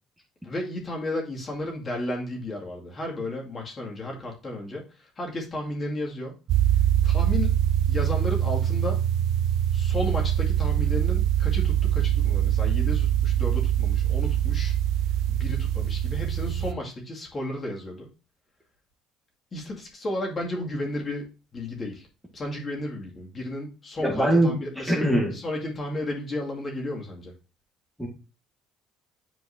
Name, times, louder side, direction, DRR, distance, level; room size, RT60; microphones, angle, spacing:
voice 1, 0.4-6.3 7.0-7.5 7.9-9.0 9.7-14.7 15.3-18.1 19.5-21.3 21.5-22.1 22.3-27.3, left 1 dB, 35° left, 0 dB, 2.4 m, -33 dB
sound 1, 6.5-16.7, right 11 dB, 65° right, 0.6 m, -23 dB
voice 2, 24.0-24.6 24.9-25.3 28.0-28.1, right 1 dB, ahead, -1 dB, 1.9 m, -21 dB
8.4 x 4.5 x 2.8 m, 0.32 s
supercardioid pair, 85°, 0 cm